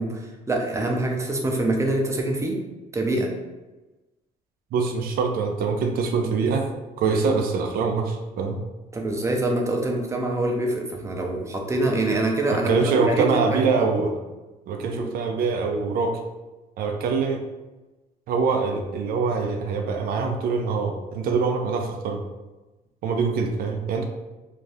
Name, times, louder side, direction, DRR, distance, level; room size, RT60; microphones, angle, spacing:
voice 1, 0.0-2.6 2.9-3.3 8.9-14.1 14.9-15.1, right 2 dB, 15° right, 0 dB, 0.6 m, -25 dB
voice 2, 4.7-6.7 7.0-8.6 12.5-14.1 14.7-16.2 16.8-17.4 18.3-22.2 23.0-24.0, right 4 dB, 60° right, 4 dB, 0.4 m, -24 dB
2.7 x 2.3 x 3.3 m, 1.1 s
cardioid pair, 110°, 17 cm